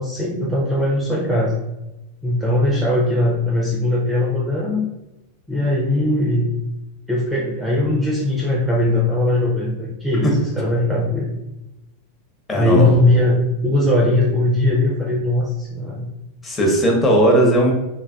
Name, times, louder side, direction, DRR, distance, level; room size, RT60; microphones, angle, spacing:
voice 1, 0.0-1.6 2.2-4.9 5.5-6.5 7.1-11.3 12.5-16.1, left 1 dB, 5° right, -4 dB, 0.5 m, -19 dB
voice 2, 12.5-12.9 16.4-17.7, equal, 20° left, -1 dB, 0.8 m, -16 dB
3.3 x 2.3 x 2.3 m, 0.96 s
figure-of-eight pair, 90°, 0 cm